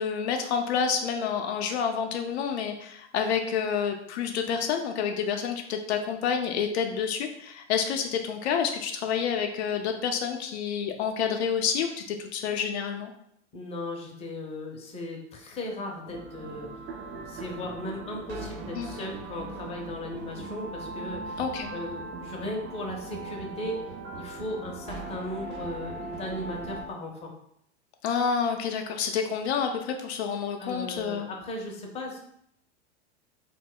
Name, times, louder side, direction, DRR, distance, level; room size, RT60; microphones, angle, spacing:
voice 1, 0.0-13.1 18.7-18.9 21.4-21.7 28.0-31.3, left 7 dB, 70° left, 4 dB, 0.5 m, -28 dB
voice 2, 13.5-16.7 17.3-21.4 21.7-23.8 24.1-27.3 30.6-32.3, left 1 dB, 20° left, 0 dB, 0.6 m, -37 dB
sound 1, 16.0-26.9, right 3 dB, 35° right, 0.5 m, -39 dB
2.3 x 2.1 x 3.6 m, 0.72 s
hypercardioid pair, 105°, 34 cm